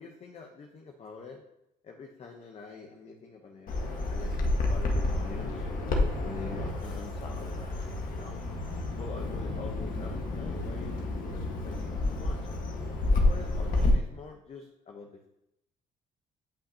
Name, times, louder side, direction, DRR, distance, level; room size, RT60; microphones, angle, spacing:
voice 1, 0.0-1.4 1.8-5.7 6.2-8.4 9.0-12.7 13.2-15.3, left 4 dB, 40° left, 3 dB, 1.0 m, -45 dB
Bird vocalization bird call bird song, 3.7-13.9, left 2 dB, 55° left, 1.6 m, -30 dB
10.0 x 5.7 x 2.9 m, 0.83 s
cardioid pair, 110°, 17 cm